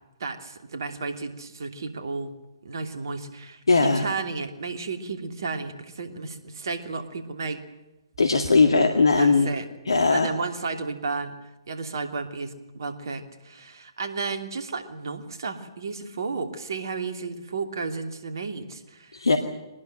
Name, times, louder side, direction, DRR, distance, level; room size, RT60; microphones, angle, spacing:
voice 1, 0.2-2.3 2.6-7.6 9.2-9.7 10.1-11.3 11.7-19.3, right 4 dB, 55° right, 7 dB, 2.9 m, -33 dB
voice 2, 3.7-4.1 8.2-9.5 9.9-10.3 19.1-19.4, left 4 dB, 70° left, 7 dB, 2.0 m, -19 dB
23.0 x 19.5 x 9.2 m, 1.0 s
figure-of-eight pair, 130°, 2 cm